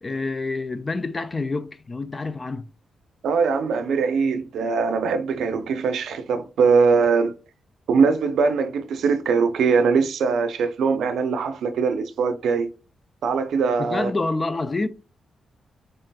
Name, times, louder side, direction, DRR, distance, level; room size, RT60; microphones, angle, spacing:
voice 1, 0.0-2.7 13.8-14.9, left 3 dB, 30° left, 0.4 m, -27 dB
voice 2, 3.2-7.3 7.9-12.7 13.2-14.1, right 5 dB, 85° right, 0.5 m, -21 dB
4.0 x 3.7 x 2.3 m
cardioid pair, 110°, 0 cm